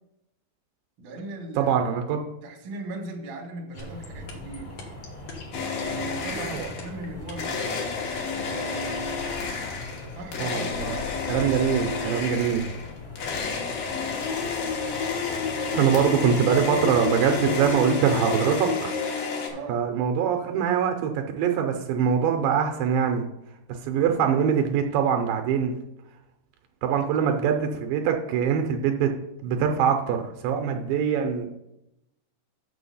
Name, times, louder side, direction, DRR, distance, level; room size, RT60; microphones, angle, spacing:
voice 1, 1.0-1.7 2.4-4.8 5.8-7.9 8.3-9.0 10.1-11.0 19.5-19.8 27.1-27.2, right 2 dB, 50° right, 1 dB, 1.6 m, -39 dB
voice 2, 1.6-2.2 6.5-6.7 10.4-11.0 11.3-12.6 15.7-19.2 19.7-23.2 23.8-25.7 26.8-29.1 29.4-31.5, right 7 dB, 80° right, 5 dB, 2.3 m, -23 dB
sound 1, 3.7-17.7, left 2 dB, 45° left, 2.6 m, -41 dB
sound 2, 3.8-7.6, left 5 dB, 60° left, 1.6 m, -42 dB
sound 3, 5.5-7.0 7.4-19.5, left 5 dB, 80° left, 3.3 m, -30 dB
7.0 x 6.4 x 5.5 m, 0.87 s
omnidirectional pair, 4.2 m